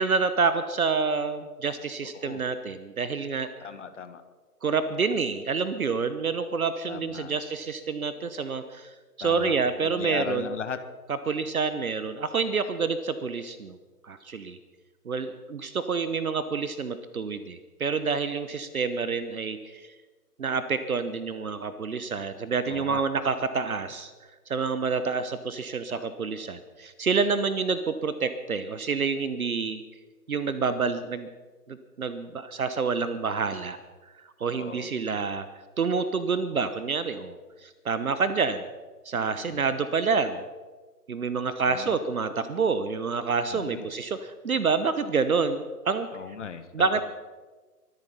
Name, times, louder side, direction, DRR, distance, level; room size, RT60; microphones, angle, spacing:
voice 1, 0.0-3.5 4.6-8.9 9.2-10.5 11.3-13.8 14.0-14.6 15.0-19.9 20.4-24.1 24.5-29.8 30.3-31.3 31.7-33.8 34.4-35.5 35.8-37.4 37.6-38.6 39.0-40.5 41.1-46.1 46.7-47.0, right 5 dB, 60° right, 12 dB, 1.1 m, -28 dB
voice 2, 2.0-2.4 3.6-4.2 6.9-7.4 9.2-10.8 11.3-11.4 22.7-23.0 25.9-26.0 34.5-34.9 39.5-39.6 41.7-42.0 43.5-43.9 46.1-47.0, left 6 dB, 50° left, 11 dB, 1.4 m, -38 dB
24.0 x 8.5 x 5.5 m, 1.3 s
figure-of-eight pair, 135°, 47 cm